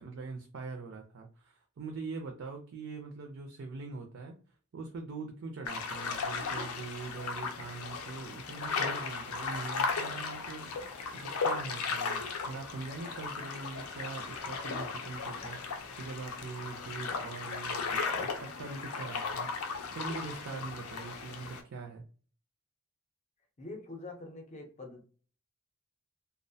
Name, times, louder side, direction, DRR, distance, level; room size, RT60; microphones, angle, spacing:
voice 1, 0.0-4.4 4.7-19.5 19.9-22.0, right 4 dB, 60° right, 0.4 m, -43 dB
sound 1, 5.7-21.6, left 4 dB, 85° left, 0.5 m, -36 dB
voice 2, 23.6-25.0, left 2 dB, 30° left, 0.5 m, -44 dB
2.4 x 2.1 x 2.6 m
head